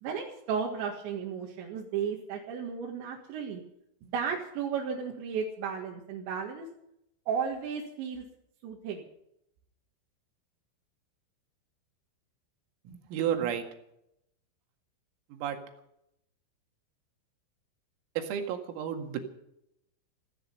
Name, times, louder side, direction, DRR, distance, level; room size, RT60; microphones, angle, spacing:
voice 1, 0.0-3.6 4.0-6.7 7.3-8.2 8.6-9.1, right 6 dB, 65° right, -1 dB, 3.8 m, -34 dB
voice 2, 12.9-13.6 15.4-15.6 18.2-19.2, right 9 dB, 85° right, 5 dB, 4.6 m, -31 dB
16.0 x 15.5 x 5.5 m, 0.78 s
omnidirectional pair, 5.9 m